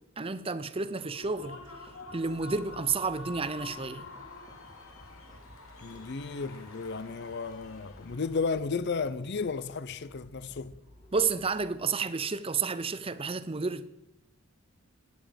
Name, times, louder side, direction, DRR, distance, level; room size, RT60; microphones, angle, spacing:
voice 1, 0.2-1.6 2.1-4.1 11.1-14.0, right 4 dB, 25° right, 0.6 m, -31 dB
Human voice / Cheering / Applause, 0.9-8.6, left 2 dB, 80° left, 2.6 m, -48 dB
sound 1, 1.2-11.6, equal, 35° left, 4.8 m, -56 dB
voice 2, 5.8-10.7, left 4 dB, 50° left, 0.6 m, -33 dB
16.5 x 10.0 x 5.2 m
head